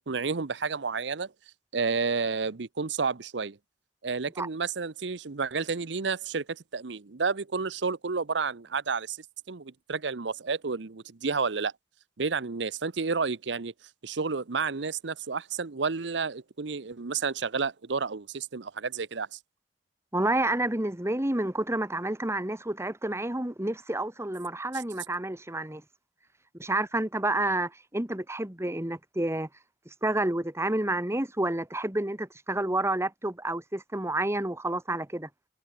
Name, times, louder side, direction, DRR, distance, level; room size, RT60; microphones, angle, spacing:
voice 1, 0.1-1.3 1.7-3.6 4.0-9.2 9.5-11.7 12.2-13.7 14.0-19.4, right 5 dB, 80° right, 0.8 m, -31 dB
voice 2, 20.1-25.8 26.6-29.5 30.0-35.3, right 1 dB, 15° right, 1.7 m, -29 dB
head